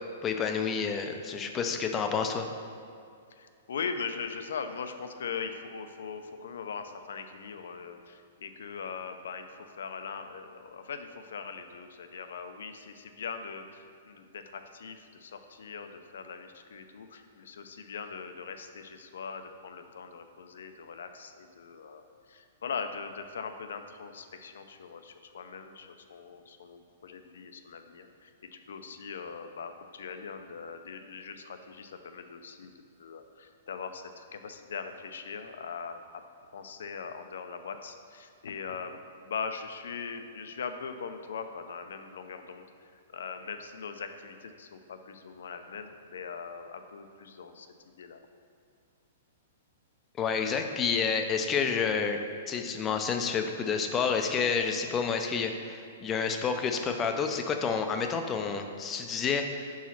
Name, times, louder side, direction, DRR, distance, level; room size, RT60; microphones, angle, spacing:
voice 1, 0.2-2.5 50.2-52.2 52.5-59.8, left 6 dB, 15° left, 5 dB, 0.3 m, -29 dB
voice 2, 3.3-32.7 33.0-36.2 36.5-47.7 48.0-48.2, left 5 dB, 80° left, 8 dB, 0.5 m, -41 dB
4.8 x 4.0 x 5.8 m, 2.4 s
hypercardioid pair, 175°, 0 cm